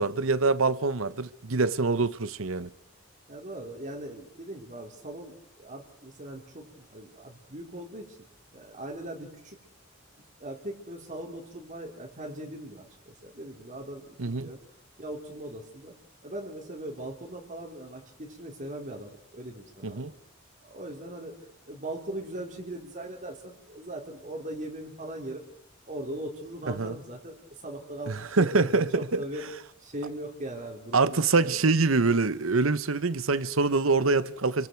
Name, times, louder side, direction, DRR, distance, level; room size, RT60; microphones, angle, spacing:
voice 1, 0.0-2.7 14.2-14.5 19.8-20.1 26.7-26.9 28.1-29.2 30.9-34.7, right 3 dB, 85° right, 1.0 m, -25 dB
voice 2, 3.3-8.2 8.5-9.6 10.4-14.6 15.0-16.0 16.2-20.2 20.6-21.3 21.7-25.4 25.9-27.4 27.6-29.5 29.8-31.7, right 1 dB, 40° right, 4.0 m, -40 dB
29.5 x 24.0 x 4.6 m
head